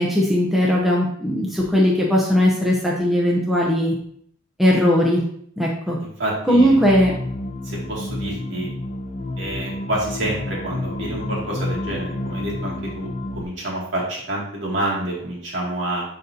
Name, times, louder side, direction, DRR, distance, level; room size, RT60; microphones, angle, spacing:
voice 1, 0.0-3.9 4.6-5.2 5.6-6.0 6.5-7.1, equal, ahead, -3 dB, 0.7 m, -18 dB
voice 2, 6.0-6.8 7.6-8.7 9.4-16.0, right 1 dB, 55° right, -4 dB, 2.3 m, -28 dB
sound 1, 6.6-13.4, left 1 dB, 30° left, 0.4 m, -30 dB
10.0 x 4.1 x 2.8 m, 0.66 s
head